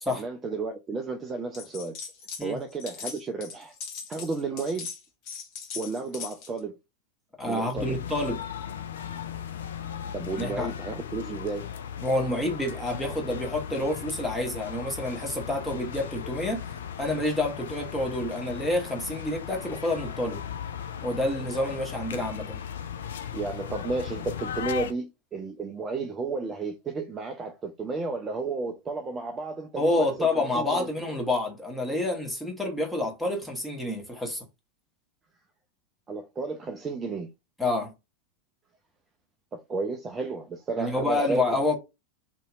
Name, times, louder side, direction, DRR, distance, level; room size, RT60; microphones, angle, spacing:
voice 1, 0.1-2.0 2.4-3.7 4.1-4.9 5.7-6.8 7.5-8.0 10.1-11.7 23.3-30.9 36.1-37.3 39.5-41.4, right 3 dB, 20° right, 0.4 m, -32 dB
sound 1, 1.5-2.5 2.7-6.6, left 6 dB, 40° left, 0.9 m, -39 dB
voice 2, 7.4-8.4 10.4-10.7 12.0-16.6 17.0-20.4 21.0-22.6 29.8-34.5 37.6-37.9 40.8-41.8, left 2 dB, 5° left, 1.1 m, -28 dB
sound 2, 7.8-24.9, left 8 dB, 60° left, 0.4 m, -37 dB
2.9 x 2.7 x 2.3 m
figure-of-eight pair, 90°, 0 cm